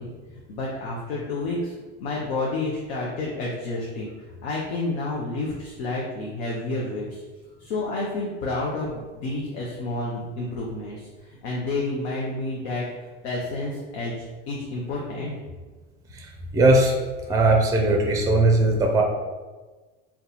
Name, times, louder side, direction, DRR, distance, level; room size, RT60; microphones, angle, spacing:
voice 1, 0.0-1.7 2.0-7.2 7.6-12.8 13.2-15.4, left 2 dB, 85° left, -3 dB, 0.7 m, -30 dB
voice 2, 16.1-16.9 17.3-19.0, right 2 dB, 10° right, 1 dB, 0.5 m, -19 dB
2.7 x 2.3 x 3.8 m, 1.3 s
supercardioid pair, 95°, 31 cm